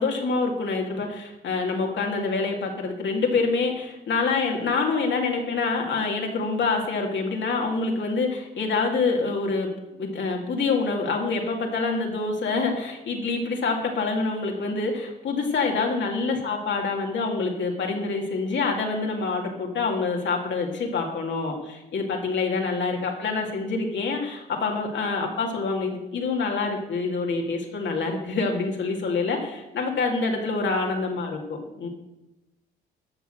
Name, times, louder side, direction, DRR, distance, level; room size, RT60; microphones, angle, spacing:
voice 1, 0.0-31.9, left 4 dB, 60° left, 1 dB, 2.3 m, -26 dB
12.5 x 5.7 x 6.4 m, 0.98 s
supercardioid pair, 60°, 21 cm